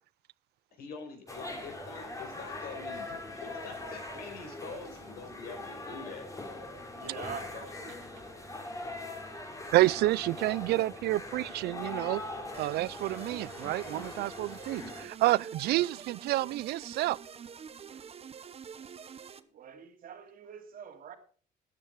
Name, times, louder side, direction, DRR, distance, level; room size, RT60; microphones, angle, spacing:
voice 1, 0.7-6.3 7.0-7.7, left 5 dB, 65° left, 5.2 m, -45 dB
sound 1, 1.3-15.1, left 2 dB, 20° left, 3.1 m, -42 dB
voice 2, 5.2-5.6 6.9-7.9 17.9-21.2, right 7 dB, 55° right, 2.7 m, -47 dB
voice 3, 9.7-12.2 12.6-17.2, right 17 dB, 75° right, 0.5 m, -29 dB
sound 2, 12.5-19.4, right 7 dB, 35° right, 1.0 m, -47 dB
13.5 x 9.7 x 4.7 m
cardioid pair, 110°, 17 cm